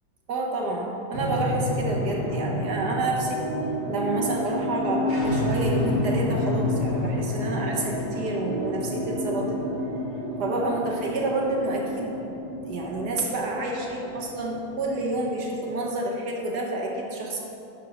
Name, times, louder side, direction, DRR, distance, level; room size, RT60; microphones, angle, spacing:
voice 1, 0.3-3.4 3.9-9.6 10.4-12.4 12.7-17.4, right 2 dB, 60° right, -1 dB, 1.7 m, -29 dB
sound 1, 1.1-15.8, left 1 dB, 20° left, 1.8 m, -29 dB
11.0 x 4.7 x 6.3 m, 2.8 s
omnidirectional pair, 2.1 m